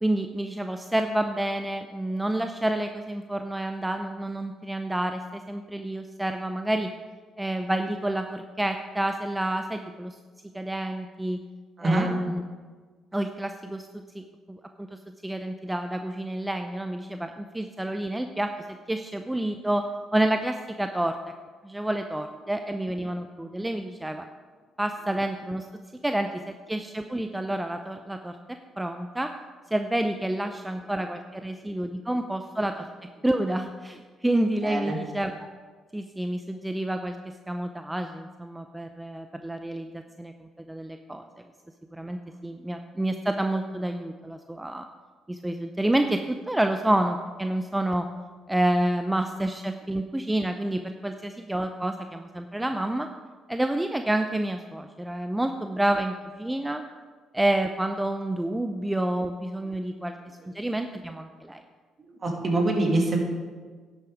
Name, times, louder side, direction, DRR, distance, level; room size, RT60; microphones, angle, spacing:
voice 1, 0.0-6.9 7.4-10.2 10.5-11.4 11.8-12.4 13.1-18.5 18.9-19.8 20.1-21.1 21.6-24.2 24.8-25.7 26.0-28.4 28.8-29.3 29.7-32.9 33.2-35.3 35.9-41.2 41.9-44.9 45.3-48.1 48.5-53.1 53.5-56.8 57.3-60.1 60.5-61.6, right 1 dB, 10° right, 6 dB, 0.6 m, -29 dB
voice 2, 11.8-12.1 25.9-26.0 34.6-35.0 59.9-60.0 60.4-60.5 62.0-63.2, right 2 dB, 45° right, 1 dB, 2.5 m, -25 dB
11.0 x 7.9 x 4.9 m, 1.5 s
hypercardioid pair, 55°, 0 cm